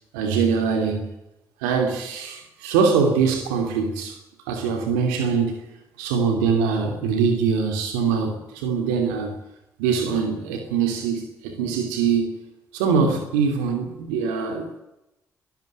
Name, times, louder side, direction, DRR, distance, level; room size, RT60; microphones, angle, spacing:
voice 1, 0.1-1.1 1.6-4.2 4.5-5.7 6.0-9.3 9.8-12.3 12.7-14.8, right 5 dB, 90° right, 2.9 m, -23 dB
23.0 x 13.5 x 9.4 m
hypercardioid pair, 45°, 8 cm